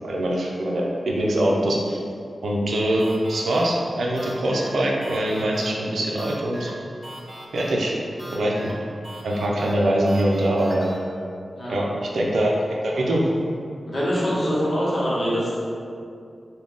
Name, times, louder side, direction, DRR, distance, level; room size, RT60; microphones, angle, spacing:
voice 1, 0.0-2.0 2.4-6.7 7.5-7.9 8.3-8.5 9.2-10.9 11.7-12.5 12.8-13.3, right 1 dB, 90° right, -2 dB, 0.5 m, -23 dB
sound 1, 3.0-11.0, right 1 dB, 25° right, 0.5 m, -42 dB
voice 2, 13.9-15.6, equal, 50° left, -8 dB, 0.9 m, -24 dB
3.8 x 2.2 x 3.6 m, 2.4 s
wide cardioid pair, 80°, 0 cm